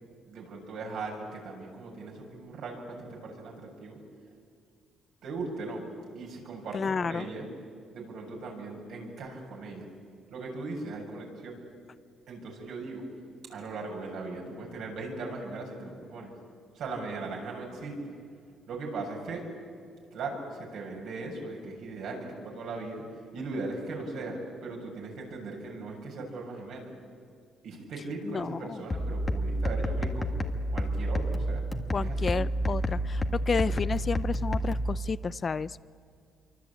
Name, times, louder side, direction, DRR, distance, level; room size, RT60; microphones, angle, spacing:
voice 1, 0.3-4.0 5.2-5.9 6.1-7.5 7.9-9.9 10.3-11.6 12.3-13.0 13.5-16.3 16.7-18.0 18.7-19.5 20.1-23.0 23.3-26.9 27.6-30.3 30.7-31.6 32.0-32.3, right 3 dB, 75° right, 0 dB, 7.3 m, -38 dB
voice 2, 6.7-7.3 28.2-28.8 31.9-35.8, left 5 dB, 40° left, 17 dB, 0.6 m, -31 dB
sound 1, 28.9-34.9, equal, 25° left, 1.8 m, -29 dB
27.0 x 24.5 x 8.6 m, 2.2 s
cardioid pair, 90°, 0 cm